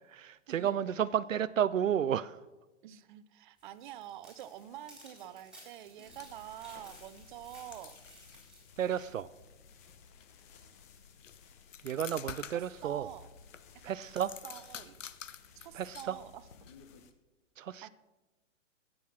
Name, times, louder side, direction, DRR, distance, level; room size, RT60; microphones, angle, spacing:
voice 1, 0.1-2.4 8.8-9.3 11.8-13.1 13.8-14.3 15.7-16.2 17.6-17.9, right 9 dB, 80° right, 16 dB, 0.5 m, -32 dB
voice 2, 2.8-8.0 12.5-13.3 14.4-15.0 15.6-16.5 17.8-17.9, right 12 dB, 40° right, 14 dB, 0.6 m, -47 dB
sound 1, 3.6-8.7, right 1 dB, ahead, 4.0 m, -57 dB
sound 2, 4.4-17.1, left 7 dB, 15° left, 0.3 m, -62 dB
sound 3, 6.1-17.1, left 7 dB, 75° left, 0.8 m, -51 dB
12.5 x 7.8 x 6.1 m, 1.1 s
figure-of-eight pair, 115°, 38 cm